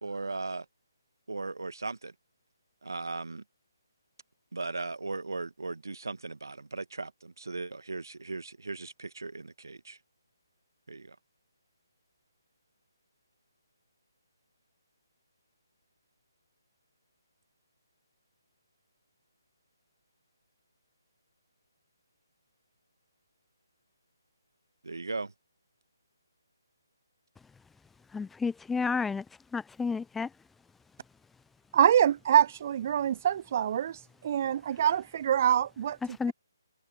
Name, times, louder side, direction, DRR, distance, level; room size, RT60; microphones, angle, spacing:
voice 1, 0.0-0.6 1.3-2.1 2.8-3.4 4.5-10.0 10.9-11.1 24.8-25.3, right 3 dB, 70° right, 1.7 m, -37 dB
voice 2, 28.1-29.2 29.5-30.3 36.2-36.3, left 5 dB, 5° left, 0.8 m, -31 dB
voice 3, 31.7-36.0, right 9 dB, 35° right, 0.4 m, -25 dB
figure-of-eight pair, 145°, 2 cm